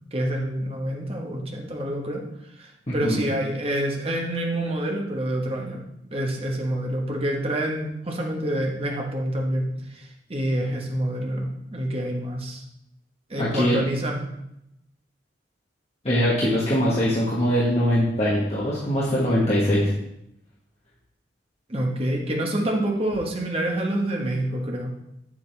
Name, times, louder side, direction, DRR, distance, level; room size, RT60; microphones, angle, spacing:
voice 1, 0.1-2.2 2.6-5.8 6.1-12.6 13.3-14.2 21.7-24.9, right 1 dB, 35° right, 0 dB, 1.2 m, -27 dB
voice 2, 2.9-3.2 13.4-13.8 16.0-19.9, equal, 35° left, -7 dB, 1.3 m, -22 dB
7.7 x 7.3 x 3.4 m, 0.83 s
head